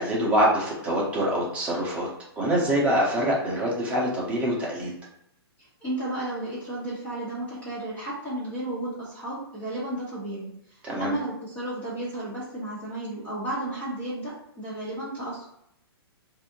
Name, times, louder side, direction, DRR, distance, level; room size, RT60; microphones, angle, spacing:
voice 1, 0.0-2.1 2.4-4.9 10.8-11.1, equal, 10° right, -5 dB, 0.9 m, -25 dB
voice 2, 5.8-10.5 11.0-15.4, right 1 dB, 10° left, -10 dB, 1.1 m, -33 dB
4.4 x 2.7 x 2.6 m, 0.75 s
hypercardioid pair, 165°, 14 cm